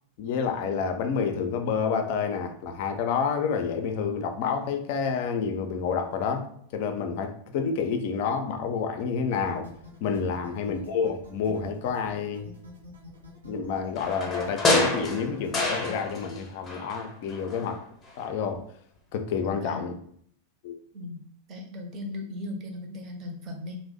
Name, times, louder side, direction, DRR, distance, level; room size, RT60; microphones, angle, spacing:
voice 1, 0.2-9.7 10.0-12.5 13.4-17.8 18.2-18.6 19.1-19.9 20.6-20.8, left 6 dB, 50° left, 6 dB, 0.4 m, -29 dB
sound 1, 9.3-15.9, left 2 dB, 75° right, 0.7 m, -47 dB
sound 2, 14.0-16.4 16.7-17.7 18.1-18.2, left 2 dB, 20° left, 0.7 m, -27 dB
voice 2, 19.4-19.8 20.9-21.2 21.5-23.8, left 2 dB, 35° right, 3 dB, 0.6 m, -37 dB
2.6 x 2.0 x 3.7 m, 0.65 s
figure-of-eight pair, 90°, 0 cm